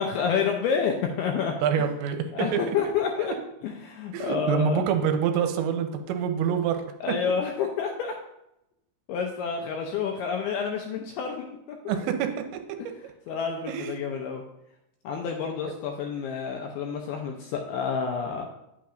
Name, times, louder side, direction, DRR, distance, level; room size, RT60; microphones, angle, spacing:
voice 1, 0.0-1.5 2.3-3.3 3.6-4.8 7.0-8.1 9.1-11.8 12.8-12.9 13.3-14.4 15.0-18.5, left 6 dB, 80° left, 2 dB, 2.3 m, -29 dB
voice 2, 1.6-2.2 2.7-2.8 4.1-6.8 7.2-7.3 11.9-12.3 13.7-13.9, right 7 dB, 90° right, 6 dB, 3.0 m, -26 dB
9.7 x 8.5 x 2.6 m, 0.85 s
omnidirectional pair, 5.2 m